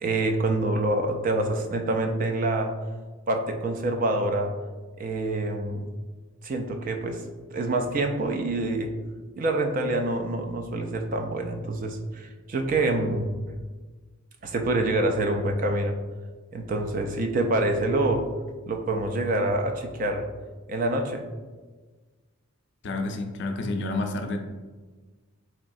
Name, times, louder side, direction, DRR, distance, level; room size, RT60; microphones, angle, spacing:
voice 1, 0.0-2.7 3.3-4.5 5.0-5.9 6.4-7.2 7.5-8.9 9.4-13.3 14.4-16.0 16.5-18.2 18.7-20.2 20.7-21.2, right 2 dB, 40° right, 4 dB, 0.3 m, -26 dB
voice 2, 22.8-24.4, left 2 dB, 55° left, 5 dB, 0.4 m, -29 dB
3.8 x 3.1 x 2.6 m, 1.3 s
head